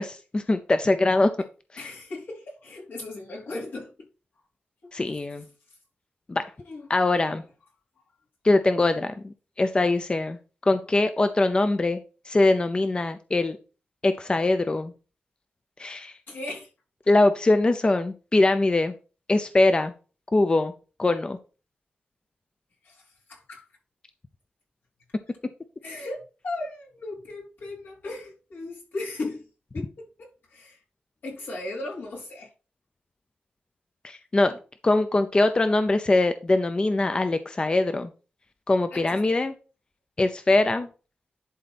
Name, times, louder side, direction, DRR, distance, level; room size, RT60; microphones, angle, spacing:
voice 1, 0.0-1.3 4.9-5.4 6.3-6.4 6.9-7.4 8.4-13.6 14.0-14.9 15.8-16.1 17.1-18.9 19.3-19.9 20.3-20.7 21.0-21.4 34.0-34.6 34.8-38.1 38.7-39.5 40.2-40.9, left 2 dB, 30° left, 0.6 m, -22 dB
voice 2, 1.8-4.1 4.8-5.2 6.6-6.9 7.2-7.4 16.3-16.7 22.8-23.7 25.8-29.5 29.7-30.8 31.2-32.5 38.9-39.4, left 2 dB, 80° left, 4.2 m, -37 dB
11.0 x 4.1 x 4.2 m
wide cardioid pair, 125°, 3 cm